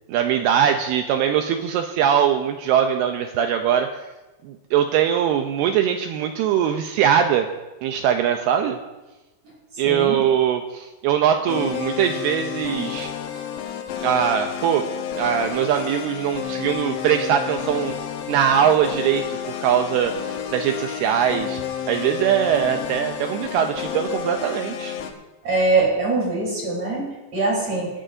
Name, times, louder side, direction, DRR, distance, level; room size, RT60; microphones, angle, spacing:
voice 1, 0.1-3.9 4.4-7.5 7.8-8.8 9.8-13.1 14.0-14.8 15.1-17.9 18.3-21.6 21.9-25.0, right 9 dB, 85° right, 5 dB, 2.3 m, -21 dB
voice 2, 9.8-10.2 25.4-27.9, right 3 dB, 35° right, -4 dB, 4.5 m, -22 dB
sound 1, 11.5-25.1, left 9 dB, 85° left, 3.3 m, -31 dB
26.0 x 10.0 x 2.6 m, 1.1 s
omnidirectional pair, 5.2 m